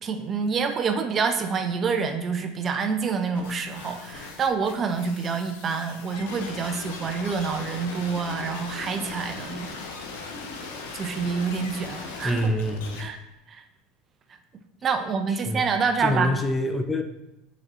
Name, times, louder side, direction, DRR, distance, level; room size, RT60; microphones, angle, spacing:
voice 1, 0.0-9.8 10.9-12.5 13.0-13.2 13.5-13.6 14.8-16.3, right 5 dB, 35° right, 7 dB, 0.7 m, -27 dB
sound 1, 3.3-13.0, left 4 dB, 65° left, 1.1 m, -39 dB
voice 2, 12.2-13.1 15.5-15.6 16.0-17.0, left 1 dB, 10° left, 6 dB, 0.6 m, -26 dB
6.5 x 4.2 x 4.3 m, 0.90 s
figure-of-eight pair, 75°, 0 cm